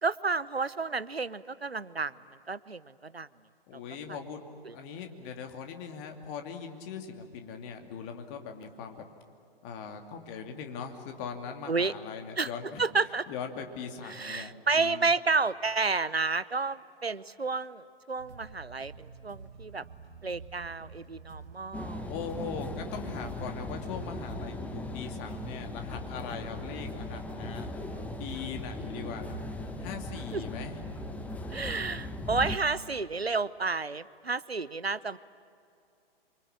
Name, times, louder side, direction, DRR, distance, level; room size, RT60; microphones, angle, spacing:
voice 1, 0.0-2.1 2.5-3.3 3.7-3.8 4.6-4.8 11.7-11.9 12.4-12.5 12.8-13.2 14.1-19.8 20.2-22.1 30.3-30.4 31.5-35.2, right 4 dB, 90° right, 17 dB, 0.9 m, -31 dB
voice 2, 3.7-4.4 4.7-9.0 9.6-12.8 13.3-14.5 14.8-15.1 20.3-20.4 22.0-27.7 28.2-29.4 29.8-30.8, left 6 dB, 30° left, 5 dB, 2.7 m, -40 dB
sound 1, 18.2-32.4, right 4 dB, 50° right, 6.2 m, -50 dB
sound 2, 21.7-32.6, left 2 dB, 5° left, 1.2 m, -38 dB
27.5 x 24.5 x 8.8 m, 2.6 s
figure-of-eight pair, 120°, 30 cm